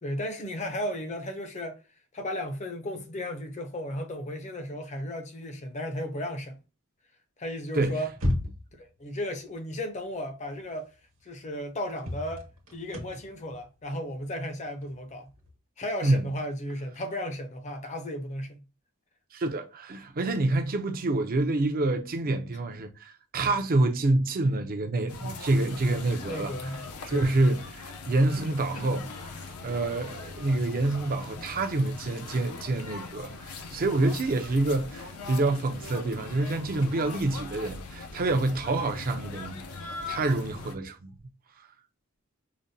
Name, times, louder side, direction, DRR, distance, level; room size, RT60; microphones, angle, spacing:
voice 1, 0.0-1.8 2.1-6.6 7.4-8.1 8.8-10.9 11.2-12.4 12.7-15.3 15.8-18.6 26.3-27.3 28.8-29.1, left 1 dB, 30° left, 0.6 m, -35 dB
sound 1, 8.1-8.8 10.6-10.7 11.1-11.2 12.0-15.5, left 1 dB, 70° right, 1.1 m, -33 dB
voice 2, 19.3-26.7 27.1-29.1 29.4-41.1, right 2 dB, 40° right, 0.5 m, -27 dB
sound 2, 25.1-40.8, left 4 dB, 90° left, 0.6 m, -41 dB
5.0 x 2.1 x 2.6 m
head